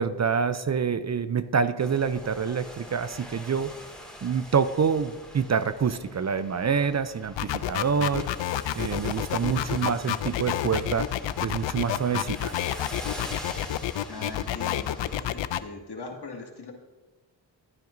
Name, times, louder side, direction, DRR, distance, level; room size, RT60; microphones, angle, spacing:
voice 1, 0.0-3.7 4.2-8.3 8.8-11.1 11.4-12.5, right 6 dB, 40° right, 13 dB, 0.5 m, -26 dB
sound 1, 1.8-15.2, equal, ahead, 2.3 m, -44 dB
sound 2, 7.4-15.6, left 12 dB, 80° left, 0.6 m, -29 dB
voice 2, 14.1-16.7, left 3 dB, 60° left, 0 dB, 2.3 m, -40 dB
15.0 x 9.2 x 2.7 m, 1.3 s
cardioid pair, 50°, 44 cm